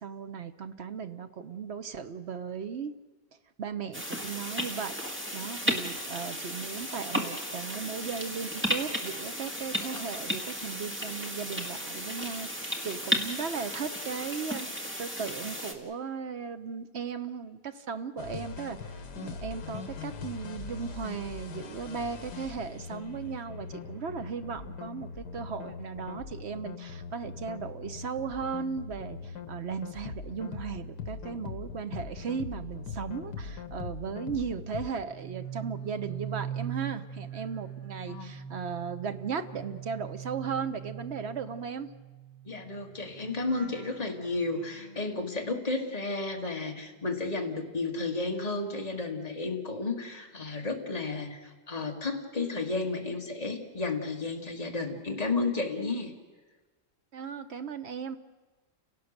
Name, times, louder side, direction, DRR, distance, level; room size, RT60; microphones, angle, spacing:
voice 1, 0.0-2.9 3.6-41.9 57.1-58.2, right 6 dB, 50° right, 10 dB, 0.9 m, -37 dB
sound 1, 3.9-15.7, equal, 5° right, 1.6 m, -34 dB
sound 2, 18.2-34.9, left 5 dB, 75° left, 1.9 m, -41 dB
sound 3, 35.0-47.2 47.5-49.6 49.9-50.3, right 8 dB, 35° right, 3.6 m, -43 dB
voice 2, 38.0-38.3 42.5-56.1, left 3 dB, 20° left, 2 dB, 2.1 m, -32 dB
30.0 x 17.5 x 6.6 m, 1.3 s
omnidirectional pair, 1.9 m